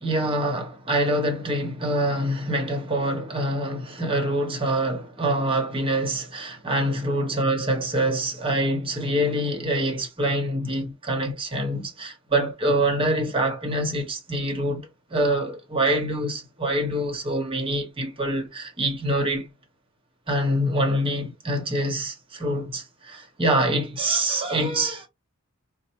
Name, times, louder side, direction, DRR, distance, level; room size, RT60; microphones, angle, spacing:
voice 1, 0.0-19.5 20.3-25.1, right 1 dB, 25° right, 0.9 m, -25 dB
4.3 x 2.0 x 2.9 m
head